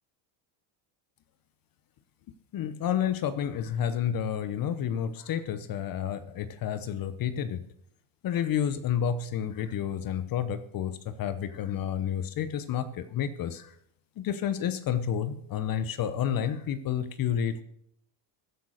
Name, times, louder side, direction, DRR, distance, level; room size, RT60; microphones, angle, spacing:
voice 1, 2.5-7.6 8.2-13.7 14.2-17.6, left 9 dB, 45° left, 13 dB, 0.9 m, -30 dB
15.5 x 8.3 x 6.4 m, 0.72 s
cardioid pair, 110°, 46 cm